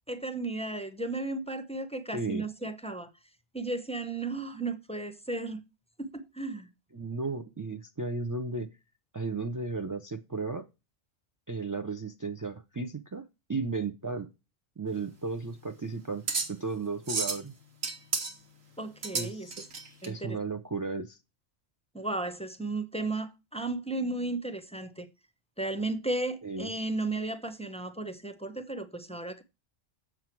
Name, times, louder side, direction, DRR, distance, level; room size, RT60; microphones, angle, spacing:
voice 1, 0.1-3.1 3.5-5.6 6.0-6.7 18.8-19.5 20.0-20.4 21.9-25.1 25.6-29.4, right 2 dB, 5° left, 0.6 m, -34 dB
voice 2, 2.1-2.5 6.9-8.7 9.1-10.6 11.5-13.2 13.5-14.3 14.8-17.5 19.1-19.6 20.1-21.2 26.4-26.7, right 3 dB, 30° right, 0.3 m, -34 dB
sound 1, 14.9-20.1, right 4 dB, 90° right, 2.0 m, -35 dB
7.7 x 7.3 x 4.5 m
omnidirectional pair, 1.3 m